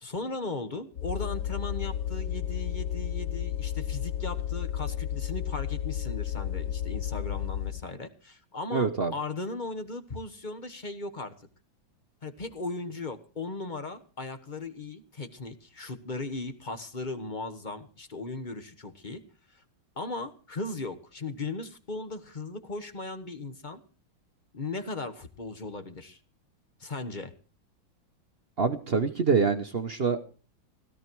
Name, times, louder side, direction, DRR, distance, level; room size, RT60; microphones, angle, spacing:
voice 1, 0.0-11.5 12.2-19.2 19.5-19.6 20.0-23.8 24.5-26.2 26.8-27.3, left 3 dB, 30° left, 10 dB, 1.2 m, -37 dB
sound 1, 1.0-7.8, left 10 dB, 55° left, 0.9 m, -32 dB
voice 2, 8.7-9.1 28.6-30.4, right 5 dB, 45° right, 9 dB, 0.7 m, -26 dB
16.5 x 13.5 x 4.6 m, 0.38 s
omnidirectional pair, 2.2 m